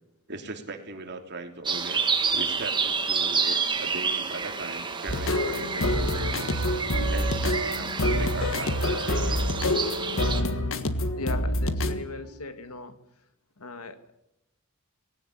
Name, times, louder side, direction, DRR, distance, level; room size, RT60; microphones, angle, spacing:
voice 1, 0.3-2.0 2.3-6.7 7.1-9.4, right 2 dB, 50° right, 4 dB, 3.3 m, -39 dB
sound 1, 1.6-10.4, right 5 dB, 20° right, 1.8 m, -29 dB
Wind instrument woodwind instrument, 4.3-7.8 8.1-12.6, right 3 dB, 80° right, 1.8 m, -40 dB
sound 2, 5.1-12.0, left 1 dB, 65° left, 1.6 m, -27 dB
voice 2, 11.2-12.9 13.6-14.1, left 3 dB, 80° left, 10 dB, 2.0 m, -38 dB
20.0 x 17.5 x 9.8 m, 0.88 s
head